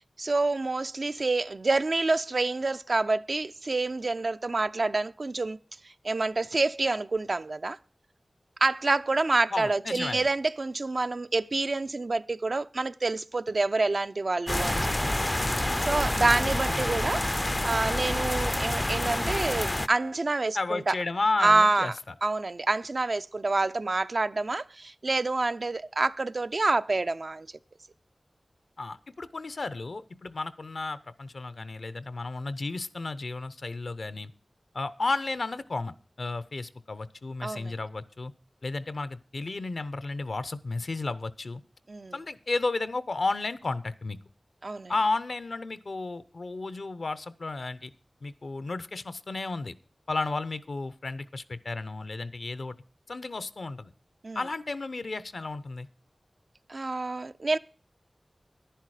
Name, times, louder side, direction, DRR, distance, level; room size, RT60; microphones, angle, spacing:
voice 1, 0.0-5.6 5.8-7.8 8.6-15.1 15.8-17.2 17.6-20.9 21.4-21.9 22.2-27.5 37.4-37.8 41.9-42.2 44.6-44.9 54.2-54.4 56.7-57.6, right 3 dB, 60° right, 0.5 m, -27 dB
voice 2, 9.5-10.3 20.5-21.9 28.8-34.3 34.7-38.3 38.6-41.6 42.1-44.2 44.9-47.9 48.2-49.7 50.1-52.7 53.1-53.9 54.3-55.9, left 3 dB, 75° left, 0.7 m, -33 dB
sound 1, 14.5-19.9, left 1 dB, 25° left, 0.4 m, -28 dB
10.5 x 10.0 x 4.8 m
wide cardioid pair, 50°, 0 cm